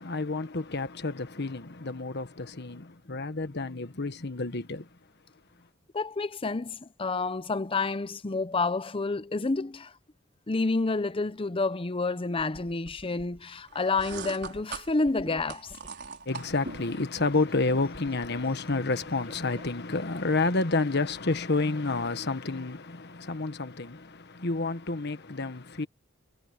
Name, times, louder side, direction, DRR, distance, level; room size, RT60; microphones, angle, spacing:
voice 1, 0.0-4.9 16.2-25.9, left 3 dB, 55° left, 1.4 m, -30 dB
voice 2, 5.9-9.9 10.5-15.7, left 3 dB, 25° left, 0.7 m, -29 dB
sound 1, 12.4-16.2 16.7-19.7, right 1 dB, 30° right, 5.4 m, -52 dB
sound 2, 13.7-17.0, right 5 dB, 55° right, 5.3 m, -41 dB
head